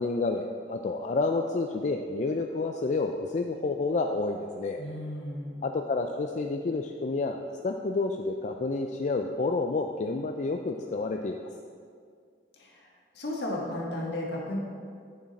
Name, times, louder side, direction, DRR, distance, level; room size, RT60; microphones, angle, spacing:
voice 1, 0.0-4.8 5.6-7.4 7.6-11.5, left 3 dB, 40° left, 3 dB, 0.4 m, -29 dB
voice 2, 4.8-5.6 12.6-12.9 13.1-14.6, left 1 dB, 65° left, -2 dB, 1.7 m, -34 dB
8.8 x 7.2 x 4.1 m, 2.1 s
head